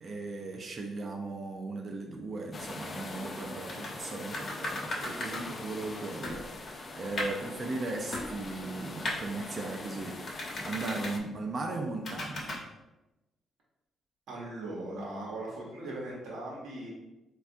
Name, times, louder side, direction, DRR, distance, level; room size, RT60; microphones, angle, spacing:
voice 1, 0.0-12.6, right 3 dB, 40° right, 1 dB, 0.4 m, -37 dB
sound 1, 2.5-11.2, left 2 dB, 40° left, 0.4 m, -42 dB
sound 2, 3.7-3.9 4.3-5.4 5.9-6.0 6.2-7.5 8.1-8.7 9.0-9.2 10.2-11.1 12.0-12.6, left 1 dB, 55° left, 0.8 m, -36 dB
voice 2, 14.3-16.9, right 1 dB, 80° right, -4 dB, 0.8 m, -39 dB
3.4 x 2.2 x 2.5 m, 1.0 s
cardioid pair, 90°, 0 cm